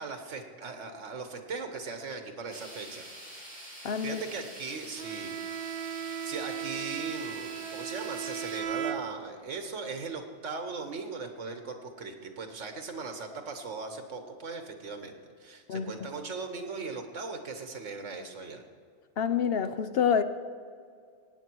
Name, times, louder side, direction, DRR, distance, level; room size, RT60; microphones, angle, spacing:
voice 1, 0.0-3.0 4.0-5.4 6.2-18.6, right 4 dB, 85° right, 6 dB, 1.6 m, -39 dB
sound 1, 2.5-8.6, equal, 5° left, 3.0 m, -46 dB
voice 2, 3.8-4.2 15.7-15.9 19.2-20.2, left 7 dB, 60° left, 11 dB, 0.8 m, -27 dB
Bowed string instrument, 5.0-9.6, right 8 dB, 60° right, 0.7 m, -37 dB
17.0 x 9.1 x 4.6 m, 2.2 s
omnidirectional pair, 1.2 m